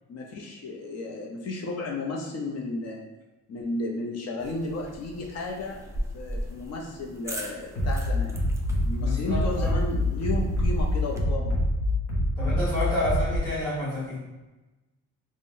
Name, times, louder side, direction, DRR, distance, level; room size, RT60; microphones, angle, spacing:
voice 1, 0.1-3.0 3.5-5.8 6.1-8.4 8.9-11.6, left 2 dB, 55° left, -1 dB, 0.6 m, -33 dB
sound 1, 4.4-11.2, equal, 10° right, 0.4 m, -36 dB
Bass drum, 7.7-13.4, left 1 dB, 85° left, 0.9 m, -26 dB
voice 2, 9.0-9.7 12.4-14.2, left 1 dB, 10° left, -11 dB, 1.2 m, -29 dB
3.7 x 2.1 x 2.6 m, 1.1 s
cardioid pair, 90°, 30 cm